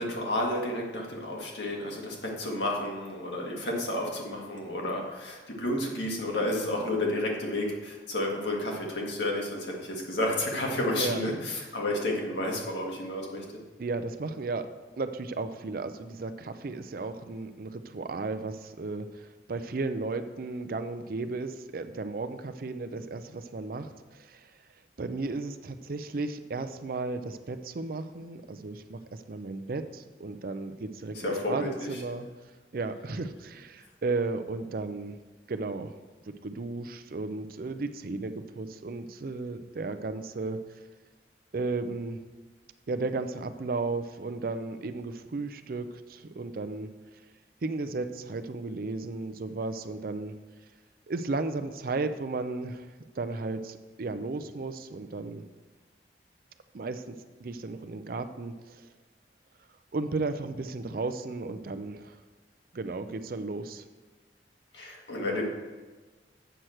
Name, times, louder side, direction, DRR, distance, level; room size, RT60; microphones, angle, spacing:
voice 1, 0.0-13.4 31.2-31.9 64.7-65.4, left 1 dB, 85° left, -1 dB, 1.8 m, -31 dB
voice 2, 10.9-11.3 13.8-14.7 15.0-24.5 25.0-32.3 32.7-35.2 35.5-35.9 36.3-40.6 41.5-42.2 42.9-46.9 47.6-50.3 51.1-52.9 53.2-55.4 56.7-58.9 59.9-62.2 62.7-63.9, right 3 dB, 55° right, 9 dB, 0.5 m, -34 dB
7.9 x 6.3 x 4.4 m, 1.3 s
head